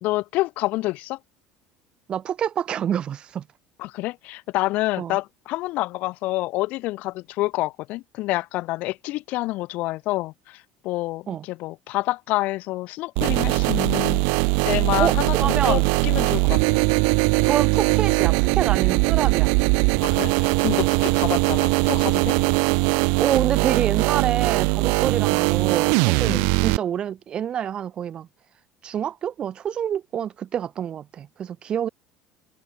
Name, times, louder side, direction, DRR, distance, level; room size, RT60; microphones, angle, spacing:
voice 1, 0.0-1.2 3.8-14.2 14.6-16.8 20.0-22.4 26.2-26.5, left 19 dB, 55° left, 1.4 m, -28 dB
voice 2, 2.1-3.5 5.0-5.2 11.3-11.5 15.0-15.9 17.5-19.6 21.2-21.4 23.2-28.3 28.8-31.9, right 9 dB, 30° right, 2.4 m, -27 dB
sound 1, 13.2-26.8, right 40 dB or more, 80° right, 0.3 m, -20 dB
cardioid pair, 160°, 3 cm